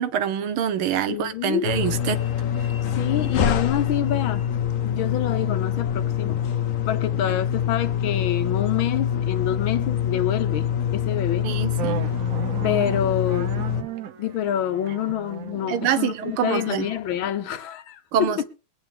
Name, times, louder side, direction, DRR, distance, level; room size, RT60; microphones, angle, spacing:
voice 1, 0.0-2.2 7.2-7.4 11.4-12.1 15.7-16.9 18.1-18.4, right 9 dB, 85° right, 1.8 m, -25 dB
voice 2, 1.1-1.6 2.9-4.4 4.8-6.5 6.9-11.5 12.6-13.6 14.2-18.4, left 10 dB, 75° left, 1.7 m, -27 dB
sound 1, 1.6-13.8, left 9 dB, 55° left, 1.0 m, -25 dB
sound 2, 11.8-17.3, right 8 dB, 60° right, 0.9 m, -36 dB
22.0 x 9.0 x 3.7 m
omnidirectional pair, 2.3 m